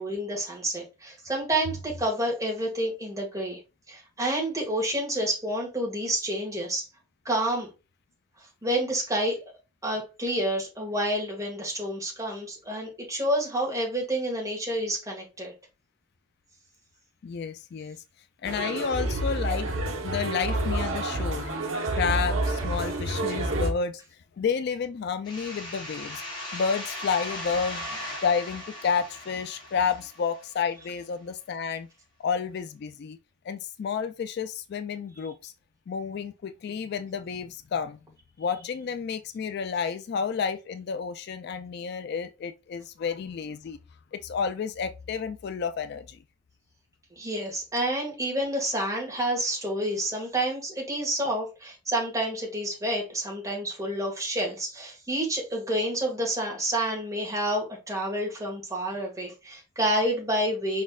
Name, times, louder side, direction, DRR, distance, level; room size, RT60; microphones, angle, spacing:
voice 1, 0.0-3.6 3.9-6.8 7.2-7.7 8.6-9.5 9.8-15.5 47.2-60.8, right 1 dB, 15° right, 1.7 m, -29 dB
voice 2, 17.2-18.0 18.4-19.7 20.0-21.5 21.9-24.0 24.4-26.2 26.5-31.9 32.2-33.2 33.4-35.5 35.9-38.0 38.4-43.8 44.1-46.2, left 6 dB, 55° left, 0.3 m, -30 dB
sound 1, 18.5-23.7, right 2 dB, 80° right, 1.0 m, -28 dB
sound 2, 25.2-30.7, left 1 dB, 25° left, 1.5 m, -38 dB
5.0 x 4.2 x 2.3 m
head